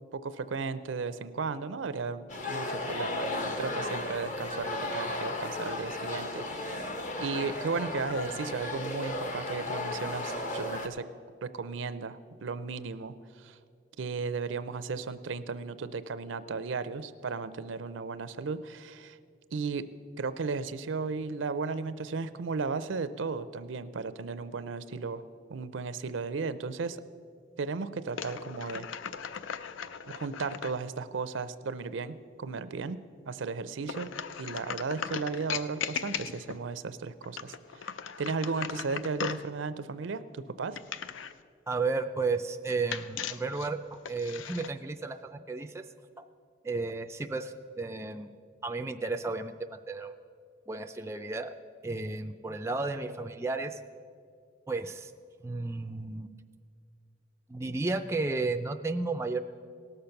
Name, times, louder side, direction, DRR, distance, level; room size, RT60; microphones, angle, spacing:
voice 1, 0.1-11.1 11.4-13.6 14.0-19.2 19.5-19.9 20.2-25.2 25.5-27.0 27.6-28.9 30.1-33.0 33.2-34.1 34.4-37.9 38.2-40.8, right 4 dB, 85° right, 13 dB, 0.5 m, -35 dB
sound 1, 2.3-10.9, left 2 dB, 40° left, 0.8 m, -35 dB
sound 2, 28.1-30.8 33.8-36.6 37.2-39.5 40.7-41.4 42.9-44.7, left 7 dB, 85° left, 0.5 m, -38 dB
voice 2, 41.7-45.8 46.2-46.3 46.6-48.3 48.6-50.1 50.7-51.5 51.8-53.8 54.7-55.1 55.4-56.3 57.5-59.4, right 3 dB, 15° right, 6 dB, 0.3 m, -33 dB
18.0 x 6.7 x 5.8 m, 2.2 s
head